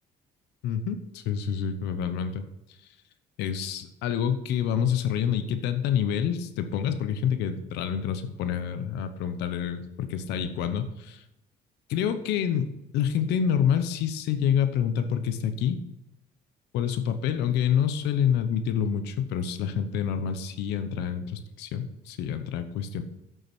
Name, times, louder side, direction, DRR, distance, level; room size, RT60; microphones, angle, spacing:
voice 1, 0.6-2.4 3.4-11.2 11.9-15.8 16.7-23.0, left 8 dB, 85° left, 10 dB, 1.0 m, -27 dB
8.4 x 7.5 x 6.1 m, 0.89 s
cardioid pair, 110°, 17 cm